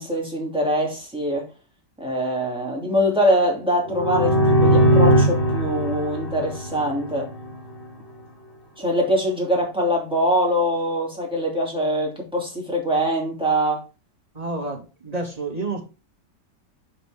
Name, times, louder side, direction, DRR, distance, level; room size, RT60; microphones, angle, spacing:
voice 1, 0.0-1.5 2.0-7.3 8.8-13.8, equal, 5° right, 2.7 m, -23 dB
sound 1, 3.9-7.6, right 1 dB, 35° left, 3.6 m, -20 dB
voice 2, 14.3-15.8, right 3 dB, 20° right, 1.9 m, -29 dB
6.1 x 5.0 x 5.1 m
omnidirectional pair, 1.9 m